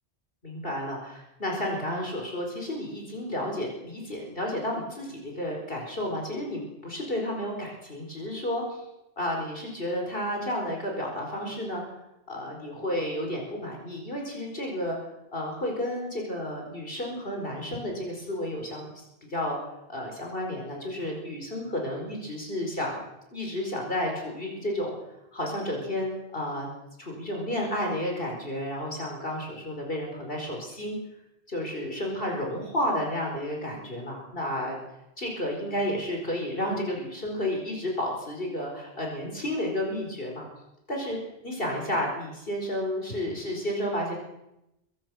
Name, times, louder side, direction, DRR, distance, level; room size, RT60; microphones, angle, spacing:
voice 1, 0.4-8.8 9.2-11.8 12.3-15.0 15.3-18.9 19.2-19.6 19.9-23.0 23.3-24.9 25.3-26.7 27.0-31.0 31.5-34.8 35.2-40.4 40.9-41.2 41.4-44.1, left 1 dB, 60° left, 0 dB, 5.0 m, -31 dB
25.0 x 23.5 x 6.3 m, 0.90 s
omnidirectional pair, 1.1 m